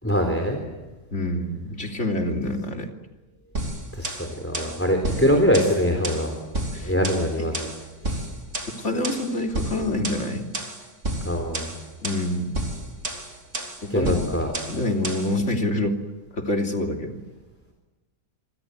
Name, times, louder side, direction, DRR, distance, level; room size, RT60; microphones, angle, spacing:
voice 1, 0.0-0.6 3.9-4.1 4.4-6.4 6.8-7.7 8.0-8.2 11.2-11.7 13.9-14.5, equal, 5° left, 4 dB, 3.8 m, -23 dB
voice 2, 1.1-2.9 6.7-6.9 8.8-10.5 12.0-12.5 13.8-14.2 14.7-16.0 16.3-17.2, left 1 dB, 40° left, 3 dB, 3.3 m, -26 dB
sound 1, 3.6-15.4, right 1 dB, 45° right, 3.6 m, -32 dB
27.5 x 25.5 x 8.1 m, 1.2 s
omnidirectional pair, 1.8 m